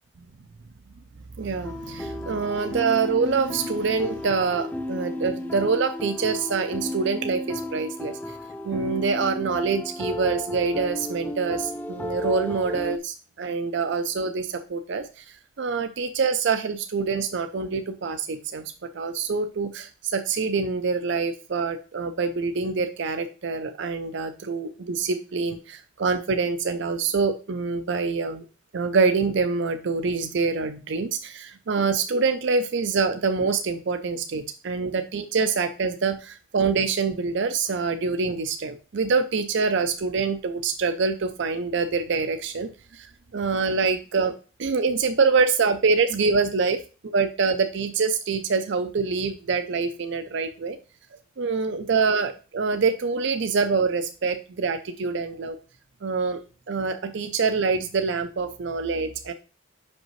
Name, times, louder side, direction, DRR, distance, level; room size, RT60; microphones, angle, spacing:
voice 1, 1.4-8.4 8.6-18.6 18.9-28.4 28.7-43.1 43.3-44.3 44.6-46.8 47.1-50.8 51.4-55.6 56.0-56.4 56.7-59.3, right 4 dB, 55° right, 8 dB, 0.5 m, -25 dB
sound 1, 1.6-13.0, left 1 dB, 10° left, 0.3 m, -33 dB
5.8 x 5.2 x 3.1 m, 0.35 s
head